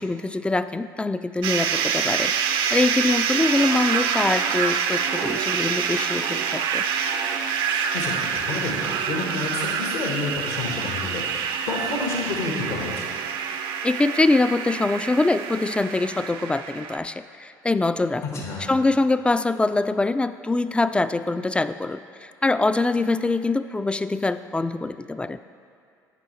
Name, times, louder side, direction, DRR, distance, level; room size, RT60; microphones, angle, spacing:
voice 1, 0.0-6.9 13.8-18.4 18.7-25.4, left 2 dB, 10° left, 12 dB, 0.3 m, -24 dB
sound 1, 1.4-17.0, right 7 dB, 60° right, 0.6 m, -26 dB
voice 2, 7.9-13.1 18.3-18.7, left 3 dB, 75° left, -1 dB, 1.3 m, -30 dB
11.5 x 7.8 x 3.1 m, 2.4 s
hypercardioid pair, 60°, 10 cm